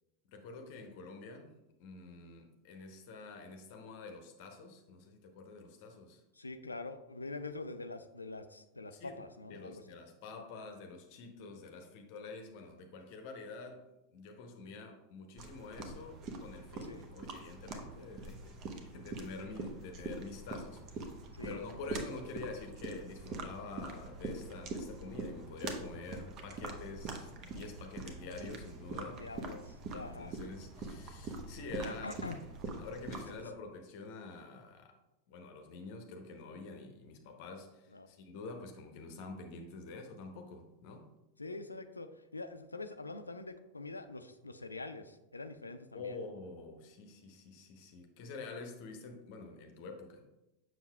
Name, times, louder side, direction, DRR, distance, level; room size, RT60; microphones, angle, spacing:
voice 1, 0.3-1.5 1.8-6.2 8.9-9.2 9.5-13.8 14.1-21.1 21.4-29.4 29.9-32.3 32.7-35.0 35.3-41.1 45.9-50.2, left 3 dB, 45° left, 4 dB, 0.7 m, -47 dB
voice 2, 6.4-9.8 16.8-17.1 21.4-21.6 29.1-30.3 31.8-32.4 37.9-38.1 41.4-46.2, left 3 dB, 80° left, 10 dB, 0.4 m, -45 dB
sound 1, 15.4-33.4, right 3 dB, 35° right, 0.8 m, -44 dB
7.2 x 5.9 x 2.3 m, 0.95 s
figure-of-eight pair, 90°, 0 cm